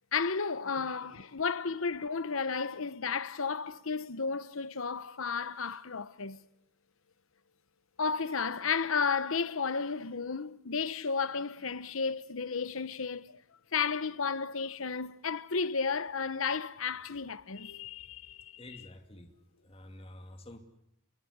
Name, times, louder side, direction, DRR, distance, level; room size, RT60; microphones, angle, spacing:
voice 1, 0.1-6.4 8.0-13.4 13.7-18.6, left 5 dB, 70° left, 1.0 m, -33 dB
voice 2, 0.7-1.2 18.6-19.3 19.6-20.6, left 1 dB, 25° left, 2.6 m, -50 dB
29.5 x 22.0 x 8.1 m
head